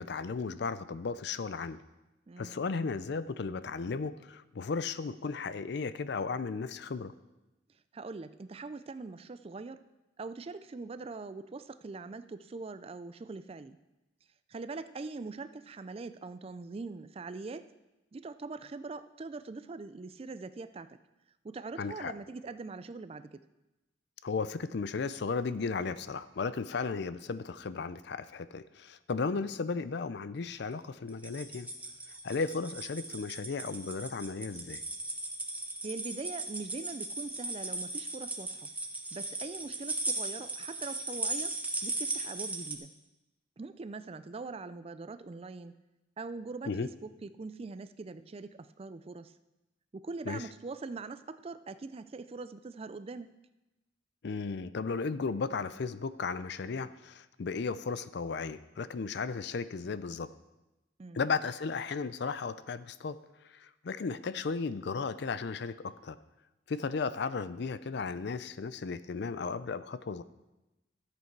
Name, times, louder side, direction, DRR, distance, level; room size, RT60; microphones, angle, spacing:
voice 1, 0.0-1.8 2.4-7.1 21.8-22.1 24.2-31.7 32.2-34.8 46.7-46.9 50.3-50.4 54.2-60.3 61.1-63.2 63.5-66.2 66.7-70.2, left 4 dB, 60° left, 14 dB, 0.4 m, -35 dB
voice 2, 2.3-2.6 7.9-9.8 10.2-13.8 14.5-17.7 18.1-21.0 21.4-23.4 35.8-38.7 39.1-42.9 43.6-45.7 46.2-49.3 49.9-53.4 61.0-61.2, right 3 dB, 30° right, 13 dB, 0.4 m, -42 dB
sound 1, 31.1-42.7, right 2 dB, 10° right, 0.8 m, -37 dB
13.0 x 8.0 x 4.6 m, 1.0 s
head